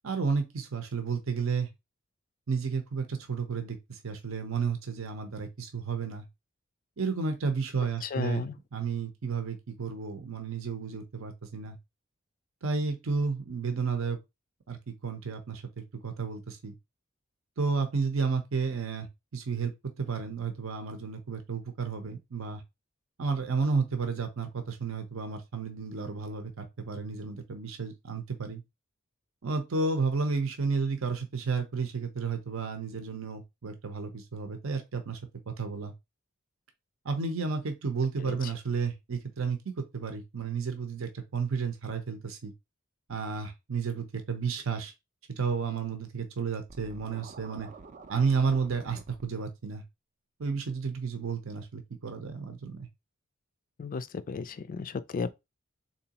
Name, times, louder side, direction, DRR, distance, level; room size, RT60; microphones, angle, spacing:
voice 1, 0.0-1.7 2.5-6.3 7.0-11.8 12.6-14.2 14.7-16.7 17.6-19.1 19.3-19.7 20.0-22.6 23.2-28.6 29.4-35.2 35.5-35.9 37.0-42.5 43.1-44.9 45.3-47.7 48.1-49.8 50.4-52.9, right 5 dB, 70° right, 0.7 m, -32 dB
voice 2, 8.0-8.5 38.2-38.4 53.8-55.3, left 4 dB, 40° left, 0.3 m, -34 dB
Scratching (performance technique), 46.7-49.3, right 4 dB, 40° right, 0.4 m, -48 dB
3.9 x 2.9 x 2.8 m
head